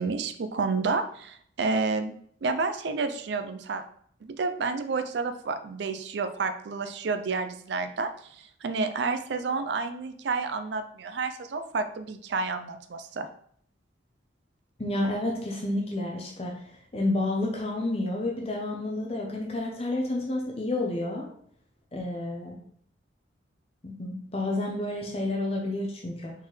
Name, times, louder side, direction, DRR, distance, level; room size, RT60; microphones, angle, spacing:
voice 1, 0.0-2.1 2.4-3.8 4.2-8.1 8.4-13.3, right 4 dB, 60° right, 9 dB, 0.4 m, -30 dB
voice 2, 14.8-16.6 16.9-21.3 21.9-22.6 23.8-26.3, left 2 dB, 30° left, -1 dB, 0.6 m, -30 dB
4.2 x 4.0 x 3.1 m, 0.62 s
head